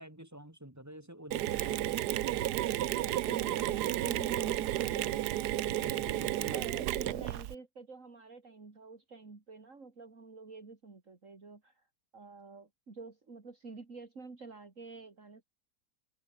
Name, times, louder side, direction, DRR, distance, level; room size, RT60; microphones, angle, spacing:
voice 1, 0.0-3.2 4.4-5.3 5.7-6.6 7.1-7.2, right 1 dB, 10° right, 2.4 m, -49 dB
Mechanisms, 1.3-7.5, right 14 dB, 85° right, 1.3 m, -32 dB
voice 2, 3.3-5.0 6.5-11.8 12.1-15.4, right 4 dB, 50° right, 3.3 m, -48 dB
open air
omnidirectional pair, 1.7 m